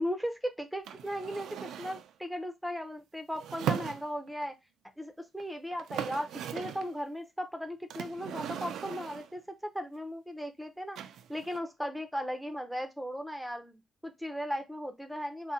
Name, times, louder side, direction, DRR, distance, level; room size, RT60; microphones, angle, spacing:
voice 1, 0.0-4.5 5.0-11.0 11.3-15.5, equal, ahead, 7 dB, 0.5 m, -37 dB
sound 1, 0.8-2.1 3.3-4.5 5.4-5.5 5.7-6.9 7.9-9.4 11.0-11.6, right 9 dB, 80° right, 0.3 m, -38 dB
2.7 x 2.1 x 3.5 m, 0.20 s
cardioid pair, 90°, 0 cm